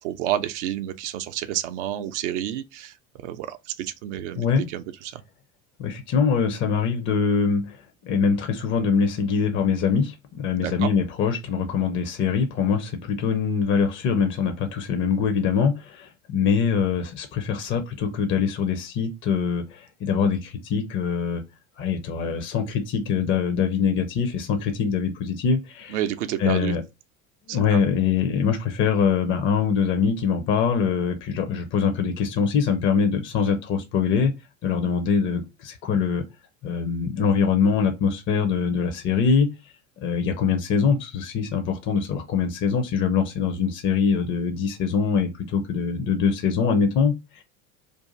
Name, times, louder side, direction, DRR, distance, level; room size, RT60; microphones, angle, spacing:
voice 1, 0.0-5.2 10.6-10.9 25.9-26.8 27.5-27.8, right 12 dB, 60° right, 0.5 m, -30 dB
voice 2, 4.4-4.7 5.8-21.4 21.8-26.0 26.4-26.8 27.5-34.3 34.6-36.2 36.6-39.5 40.0-47.4, left 6 dB, 30° left, 0.5 m, -23 dB
2.6 x 2.4 x 3.7 m
figure-of-eight pair, 75°, 41 cm